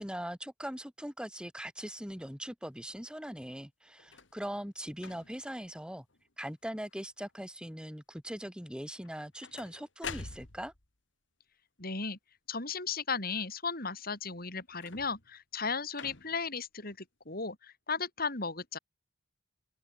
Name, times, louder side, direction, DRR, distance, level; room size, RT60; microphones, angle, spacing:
voice 1, 0.0-6.0 6.4-10.7, equal, 5° right, 6.1 m, -41 dB
sound 1, 4.0-4.4 5.0-5.5 6.1-6.5 6.7-7.3 9.0-10.9 14.7-15.3 15.9-16.5 17.3-17.4, left 5 dB, 70° left, 2.8 m, -46 dB
voice 2, 11.8-12.2 12.5-18.8, left 5 dB, 50° left, 6.0 m, -35 dB
head